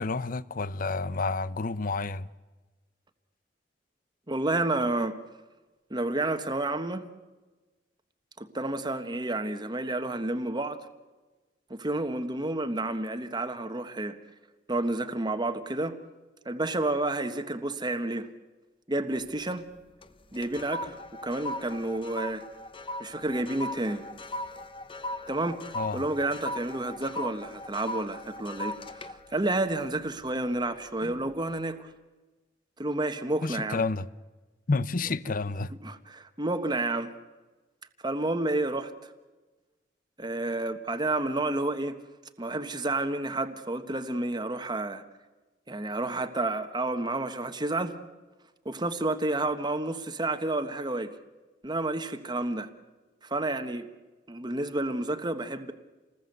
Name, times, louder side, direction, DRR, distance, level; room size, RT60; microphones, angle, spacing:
voice 1, 0.0-2.3 25.7-26.0 33.4-34.1 34.7-35.7, left 3 dB, 50° left, 0.8 m, -30 dB
voice 2, 4.3-5.2 5.9-7.1 8.4-10.9 11.7-14.2 14.7-16.0 16.4-18.3 18.9-19.7 20.3-21.0 21.2-22.5 23.0-24.0 25.3-31.9 32.8-33.8 35.8-37.1 38.0-39.1 40.2-42.0 42.4-45.0 45.7-48.0 48.6-51.2 51.6-52.7 53.2-53.9 54.3-55.7, right 2 dB, 25° right, 1.4 m, -30 dB
sound 1, 19.2-19.7 20.0-30.6 31.0-31.3, left 1 dB, 30° left, 1.0 m, -39 dB
28.5 x 20.0 x 8.0 m
head